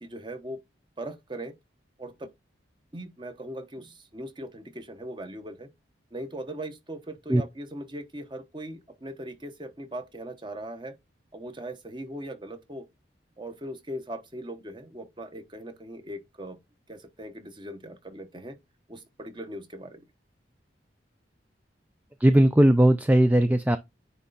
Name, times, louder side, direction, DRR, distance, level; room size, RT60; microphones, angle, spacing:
voice 1, 0.0-0.6 1.0-1.5 2.0-2.3 2.9-5.7 6.1-10.9 11.3-12.8 13.4-16.6 16.9-18.6 18.9-20.0, right 1 dB, 25° right, 1.0 m, -39 dB
voice 2, 22.2-23.8, right 1 dB, 10° right, 0.3 m, -18 dB
9.6 x 3.2 x 4.0 m
head